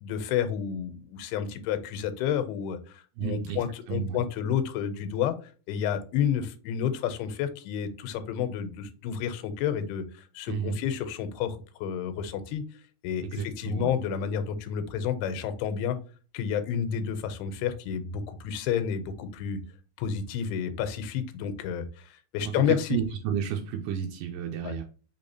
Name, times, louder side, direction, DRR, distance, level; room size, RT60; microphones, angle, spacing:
voice 1, 0.0-2.8 3.2-5.4 5.7-12.6 13.0-16.0 16.3-19.6 20.0-23.0 24.6-24.8, left 8 dB, 90° left, 11 dB, 2.6 m, -30 dB
voice 2, 3.2-4.2 10.5-10.8 13.2-13.9 22.4-24.8, right 8 dB, 85° right, 3 dB, 2.0 m, -32 dB
5.4 x 3.5 x 2.7 m, 0.37 s
omnidirectional pair, 4.4 m